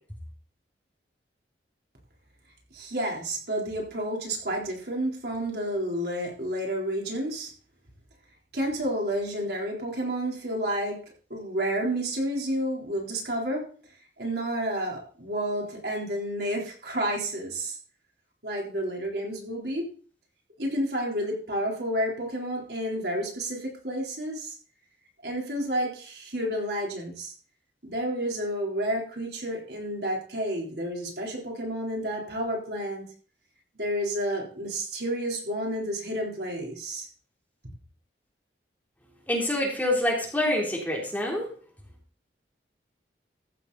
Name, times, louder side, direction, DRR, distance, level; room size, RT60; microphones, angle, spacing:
voice 1, 2.7-7.5 8.5-11.0 11.3-13.7 14.2-17.8 18.4-19.9 20.6-24.5 25.2-27.3 27.8-33.1 33.7-37.1, right 1 dB, 65° right, -1 dB, 4.0 m, -30 dB
voice 2, 39.3-41.5, left 1 dB, 10° left, -2 dB, 3.5 m, -26 dB
14.5 x 7.9 x 4.1 m, 0.43 s
head